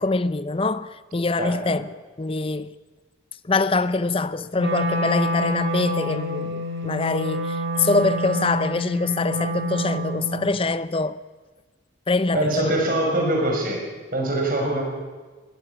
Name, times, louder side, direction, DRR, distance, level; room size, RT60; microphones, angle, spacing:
voice 1, 0.0-1.8 2.2-2.7 3.4-11.2 12.1-12.8, left 3 dB, 25° left, 0.6 m, -24 dB
voice 2, 1.4-1.7 12.3-13.8 14.1-14.8, right 1 dB, 45° right, 5.9 m, -23 dB
Wind instrument woodwind instrument, 4.6-10.6, equal, 65° right, 3.5 m, -27 dB
21.0 x 17.5 x 7.0 m
head